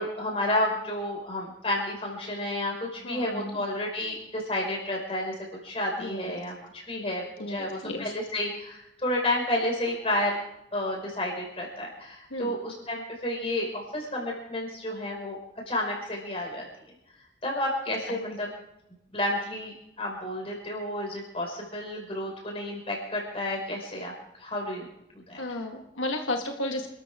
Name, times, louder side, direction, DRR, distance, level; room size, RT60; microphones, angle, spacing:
voice 1, 0.0-5.3 5.6-10.4 10.7-15.4 15.7-16.6 17.4-18.5 19.1-24.1 24.4-24.9 25.1-25.4, left 1 dB, 30° left, -1 dB, 5.7 m, -31 dB
voice 2, 3.0-3.6 6.0-6.3 7.4-8.1 12.3-12.6 18.3-18.4 25.4-26.9, left 2 dB, 90° left, 3 dB, 1.7 m, -33 dB
28.0 x 13.5 x 3.7 m, 0.84 s
head